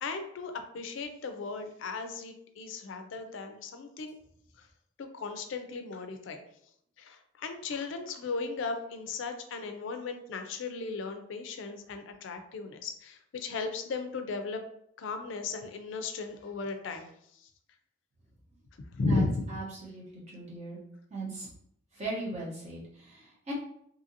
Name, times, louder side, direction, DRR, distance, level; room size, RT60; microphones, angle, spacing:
voice 1, 0.0-4.1 5.0-6.4 7.0-14.7 15.0-17.1 19.0-19.6, left 3 dB, 70° left, 7 dB, 0.4 m, -36 dB
voice 2, 19.5-20.8 21.1-21.5 21.9-23.5, right 2 dB, 35° right, -5 dB, 0.9 m, -39 dB
2.7 x 2.5 x 2.7 m, 0.71 s
head